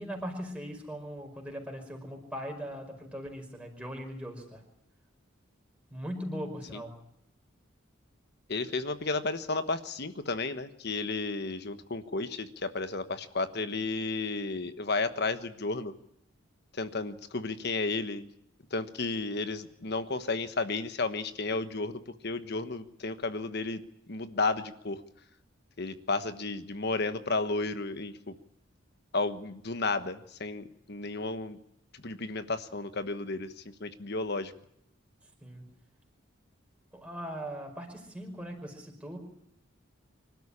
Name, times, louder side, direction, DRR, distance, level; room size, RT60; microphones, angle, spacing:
voice 1, 0.0-4.6 5.9-7.0 35.4-35.7 36.9-39.2, equal, 5° right, 1 dB, 5.2 m, -40 dB
voice 2, 8.5-15.9 16.7-18.3 18.7-23.8 24.1-25.0 25.8-28.3 29.1-31.6 32.0-34.5, left 3 dB, 55° left, 10 dB, 1.3 m, -33 dB
25.5 x 13.0 x 9.9 m, 0.76 s
head